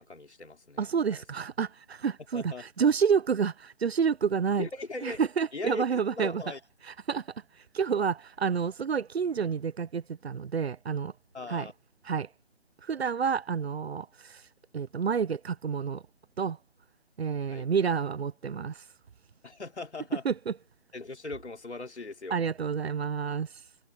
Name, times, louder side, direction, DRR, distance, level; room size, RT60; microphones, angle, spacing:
voice 1, 0.0-1.2 2.3-2.6 4.6-5.2 5.5-6.6 11.3-11.7 17.5-17.7 19.4-20.2 20.9-22.4, left 3 dB, 75° left, 4.2 m, -39 dB
voice 2, 0.8-4.7 5.0-6.4 6.9-7.3 7.7-11.1 11.5-11.7 12.1-12.3 12.8-14.4 14.7-16.0 16.4-16.6 17.2-18.8 20.2-20.6 22.3-23.5, right 6 dB, 65° right, 0.7 m, -29 dB
figure-of-eight pair, 170°, 34 cm